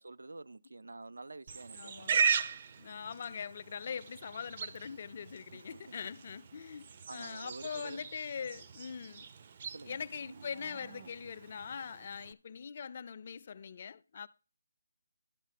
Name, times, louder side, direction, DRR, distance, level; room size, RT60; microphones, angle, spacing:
voice 1, 0.0-2.2 5.5-6.0 6.6-6.8 7.1-8.0 9.7-10.0, right 3 dB, 85° right, 0.6 m, -48 dB
Livestock farm animals working animals, 1.5-12.3, right 6 dB, 35° right, 0.5 m, -38 dB
voice 2, 1.7-2.2 2.8-9.2 9.9-14.3, left 6 dB, 40° left, 0.4 m, -42 dB
12.0 x 4.2 x 7.5 m
hypercardioid pair, 165°, 0 cm